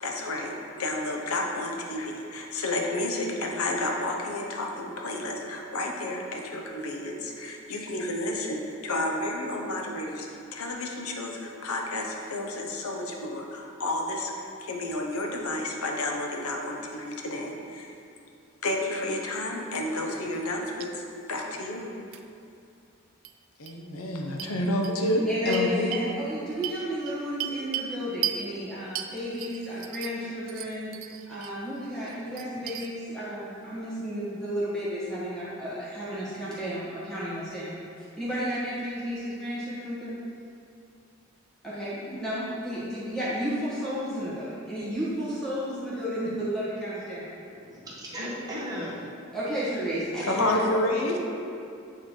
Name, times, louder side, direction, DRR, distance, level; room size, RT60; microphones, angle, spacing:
voice 1, 0.0-17.9 18.6-21.0 21.3-21.9 23.6-25.9 50.3-51.2, left 1 dB, 80° left, 1 dB, 0.7 m, -30 dB
sound 1, 20.3-20.5 20.8-20.9 22.1-22.2 23.2-23.3 23.7-23.8 24.4-24.5 24.8-24.9 25.5-26.1 26.6-27.9 28.2-28.4 29.0-30.2 30.5-31.5 31.9-32.9, right 10 dB, 65° right, 0.3 m, -35 dB
voice 2, 25.3-30.9 31.3-37.8 38.2-40.2 41.6-47.4 49.3-50.6, equal, 5° left, -11 dB, 1.3 m, -32 dB
voice 3, 47.6-49.0, equal, 15° right, -7 dB, 1.1 m, -36 dB
8.7 x 3.1 x 4.1 m, 2.5 s
head